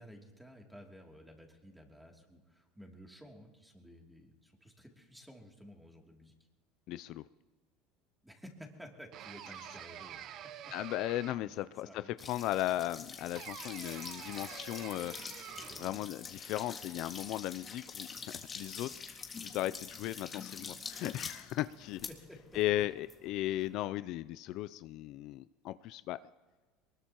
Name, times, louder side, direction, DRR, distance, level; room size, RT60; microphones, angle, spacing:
voice 1, 0.0-6.3 8.2-10.3 10.6-10.7 11.4-11.5 11.8-12.2 15.5-16.0 22.1-22.8, equal, 5° right, 1 dB, 2.8 m, -54 dB
voice 2, 6.9-7.2 10.7-15.1 15.8-18.9 19.4-22.1 22.5-26.2, left 15 dB, 60° left, 14 dB, 0.4 m, -36 dB
sound 1, 9.1-11.7 13.3-16.0, right 10 dB, 50° right, 0.9 m, -48 dB
sound 2, 12.2-23.8, left 5 dB, 25° left, 1.9 m, -46 dB
22.5 x 20.5 x 3.0 m, 1.3 s
supercardioid pair, 110°, 0 cm